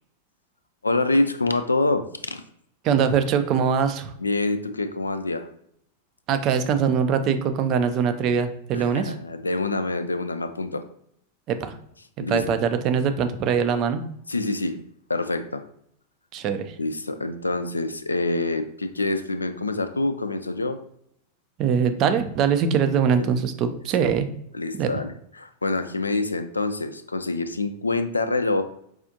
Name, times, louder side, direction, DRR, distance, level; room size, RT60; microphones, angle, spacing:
voice 1, 0.8-2.4 4.2-5.5 8.7-10.8 12.2-12.4 14.3-14.8 15.1-15.6 16.8-20.8 23.2-23.3 24.5-28.6, left 2 dB, 80° left, 9 dB, 0.3 m, -26 dB
voice 2, 2.8-4.1 6.3-9.1 11.5-11.8 12.3-14.0 16.3-16.8 21.6-24.3 24.8-24.9, right 7 dB, 35° right, 9 dB, 0.4 m, -22 dB
4.8 x 2.4 x 2.7 m, 0.70 s
figure-of-eight pair, 90°, 0 cm